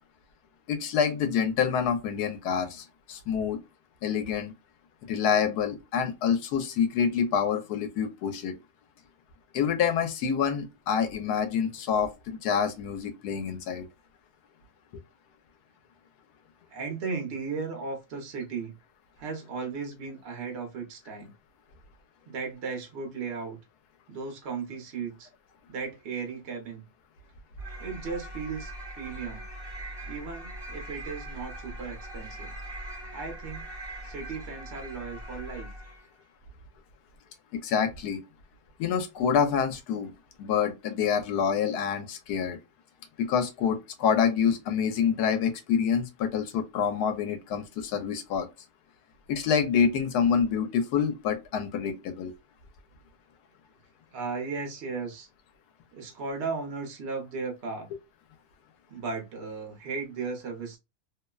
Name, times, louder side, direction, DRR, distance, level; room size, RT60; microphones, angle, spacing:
voice 1, 0.7-3.6 4.0-4.5 5.1-8.5 9.5-13.9 37.5-38.2 38.8-40.1 40.4-42.6 43.2-48.5 49.3-52.3, left 7 dB, 85° left, 1.2 m, -27 dB
voice 2, 16.7-18.8 19.2-21.3 22.3-23.6 24.1-25.3 25.7-26.8 27.8-29.4 30.1-32.5 33.1-33.7 34.0-35.7 54.1-55.3 55.9-57.9 58.9-60.8, right 4 dB, 50° right, 0.9 m, -36 dB
sound 1, 27.6-36.2, right 1 dB, 20° right, 0.9 m, -41 dB
2.9 x 2.1 x 2.3 m
omnidirectional pair, 1.6 m